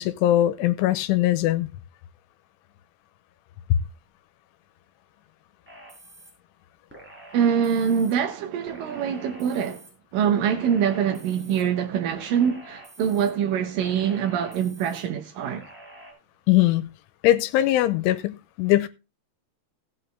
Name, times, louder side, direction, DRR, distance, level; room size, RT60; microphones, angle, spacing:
voice 1, 0.0-1.7 16.5-16.9 17.2-18.9, left 14 dB, 90° left, 3.2 m, -21 dB
sound 1, 5.7-6.3 6.9-8.1 8.7-9.9 10.4-11.6 12.1-13.3 13.8-15.0 15.5-16.1, right 1 dB, ahead, 4.8 m, -47 dB
voice 2, 7.3-9.9 10.1-15.6, right 8 dB, 85° right, 1.9 m, -24 dB
16.0 x 8.4 x 3.4 m
omnidirectional pair, 5.5 m